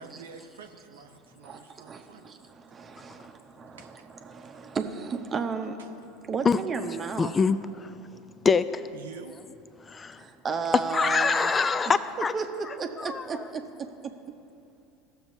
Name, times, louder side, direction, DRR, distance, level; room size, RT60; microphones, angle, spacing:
voice 1, 0.0-2.3 3.1-3.3 3.7-4.1 5.8-5.9 8.9-9.3, right 5 dB, 80° right, 4 dB, 0.6 m, -47 dB
voice 2, 1.9-5.8 6.3-7.3 10.2-11.5 12.3-13.6, right 5 dB, 30° right, 5 dB, 0.8 m, -34 dB
voice 3, 7.2-7.9 8.4-8.8 9.9-10.2 10.9-12.3 13.0-13.4, left 5 dB, 25° left, 14 dB, 0.4 m, -24 dB
16.5 x 6.8 x 2.7 m, 2.7 s
hypercardioid pair, 75°, 0 cm